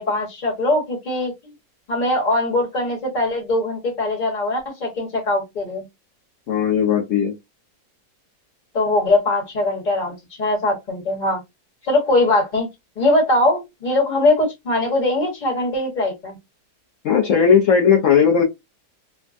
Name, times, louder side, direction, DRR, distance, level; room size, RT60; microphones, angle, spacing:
voice 1, 0.0-1.5 1.9-5.8 8.7-11.4 11.8-12.7 13.0-16.4, left 2 dB, 30° left, 1.2 m, -21 dB
voice 2, 6.5-7.3 17.0-18.4, left 7 dB, 60° left, 0.9 m, -16 dB
3.4 x 2.1 x 2.5 m
omnidirectional pair, 1.8 m